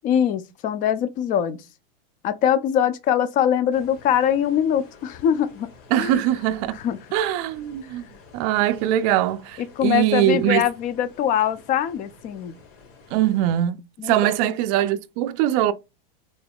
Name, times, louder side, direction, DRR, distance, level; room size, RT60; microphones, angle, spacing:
voice 1, 0.0-1.6 2.2-5.7 6.0-6.2 6.8-7.0 9.6-12.5 14.0-14.5, left 9 dB, 30° left, 0.4 m, -23 dB
sound 1, 3.7-13.6, left 4 dB, 75° left, 2.1 m, -50 dB
voice 2, 5.9-6.8 7.1-8.0 8.3-10.7 13.1-15.7, right 12 dB, 40° right, 0.4 m, -22 dB
4.0 x 3.4 x 2.3 m
supercardioid pair, 140°, 29 cm